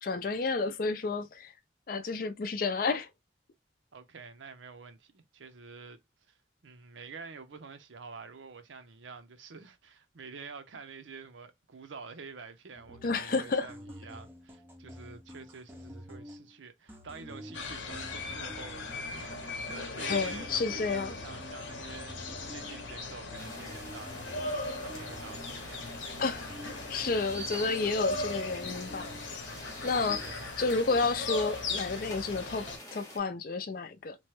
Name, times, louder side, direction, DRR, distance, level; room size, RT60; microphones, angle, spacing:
voice 1, 0.0-1.5 1.9-3.1 13.0-13.7 20.1-21.2 26.2-29.1 29.8-30.2 30.6-32.7 32.9-34.2, left 4 dB, 50° left, 0.4 m, -31 dB
voice 2, 3.9-6.0 6.3-6.4 6.6-26.0 30.2-30.6, right 4 dB, 85° right, 0.7 m, -48 dB
sound 1, 12.8-16.6 16.9-23.0 23.3-29.4 29.7-30.3, equal, 10° right, 0.5 m, -49 dB
sound 2, 17.5-32.8, left 3 dB, 85° left, 0.8 m, -39 dB
sound 3, 23.4-33.2, left 1 dB, 20° left, 0.9 m, -46 dB
3.0 x 2.2 x 3.0 m
head